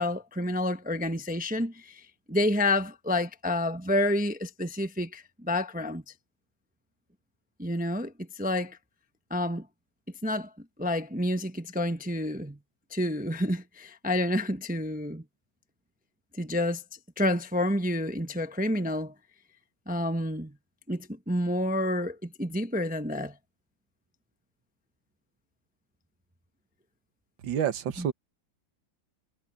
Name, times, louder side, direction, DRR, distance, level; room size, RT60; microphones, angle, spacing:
voice 1, 0.0-6.0 7.6-8.8 9.3-9.6 10.2-10.5 10.8-12.6 12.9-15.2 16.4-16.8 17.2-19.1 19.9-20.5 20.9-23.3 28.0-28.1, left 1 dB, 10° right, 0.5 m, -29 dB
voice 2, 27.4-28.1, right 9 dB, 70° right, 1.8 m, -28 dB
omnidirectional pair, 2.2 m